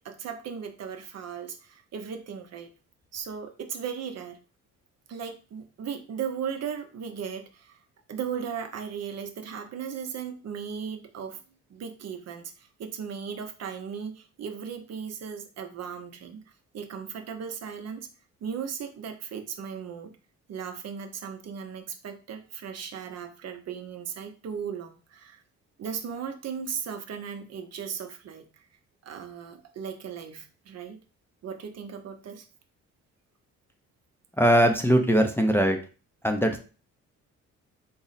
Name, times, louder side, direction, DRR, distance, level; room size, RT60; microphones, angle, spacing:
voice 1, 0.0-2.7 3.1-4.4 5.1-7.8 8.1-11.4 11.7-16.4 16.7-18.1 18.4-20.1 20.5-25.4 25.8-28.6 29.0-31.0 31.4-32.5, right 7 dB, 55° right, 6 dB, 0.7 m, -37 dB
voice 2, 34.4-35.8 36.2-36.6, equal, 10° left, 3 dB, 0.4 m, -21 dB
3.9 x 2.0 x 3.9 m, 0.36 s
cardioid pair, 90°, 30 cm